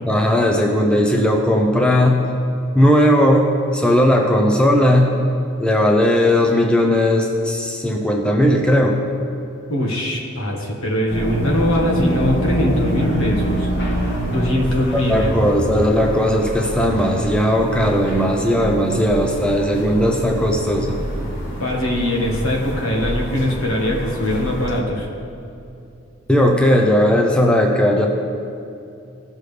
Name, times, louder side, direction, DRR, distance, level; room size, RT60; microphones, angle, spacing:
voice 1, 0.1-2.2 2.7-5.1 5.6-9.0 15.1-21.0 26.3-28.1, equal, 5° left, 1 dB, 0.6 m, -17 dB
voice 2, 9.7-13.7 14.3-15.3 21.6-25.1, left 1 dB, 75° left, 0 dB, 1.6 m, -21 dB
sound 1, 11.1-24.8, equal, 55° left, 1.5 m, -26 dB
16.5 x 6.4 x 3.4 m, 2.6 s
head